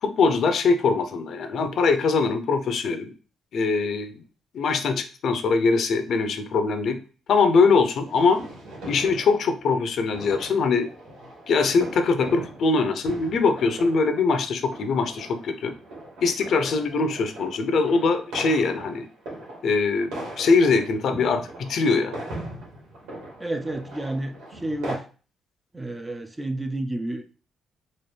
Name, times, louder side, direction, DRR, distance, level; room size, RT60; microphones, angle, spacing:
voice 1, 0.0-3.1 3.5-4.2 4.5-7.0 7.3-8.4 8.8-10.9 11.5-15.7 16.2-19.1 19.6-22.2, left 4 dB, 65° left, 8 dB, 0.6 m, -22 dB
sound 1, 8.1-25.0, right 1 dB, 90° right, 1.7 m, -40 dB
voice 2, 23.4-25.0 25.7-27.3, right 1 dB, 15° right, 6 dB, 0.5 m, -30 dB
4.2 x 2.5 x 3.2 m, 0.37 s
cardioid pair, 90°, 0 cm